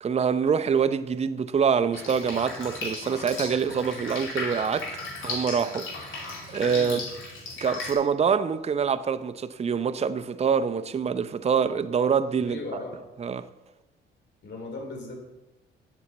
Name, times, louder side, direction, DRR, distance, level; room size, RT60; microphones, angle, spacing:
voice 1, 0.0-4.9 5.2-7.0 7.6-12.6 13.2-13.5, right 6 dB, 30° right, 0.6 m, -25 dB
Drip, 1.9-7.9, left 3 dB, 90° left, 3.2 m, -36 dB
voice 2, 6.6-7.0 12.4-12.9 14.4-15.2, left 3 dB, 60° left, 3.8 m, -37 dB
8.3 x 7.1 x 7.9 m
cardioid pair, 90°, 20 cm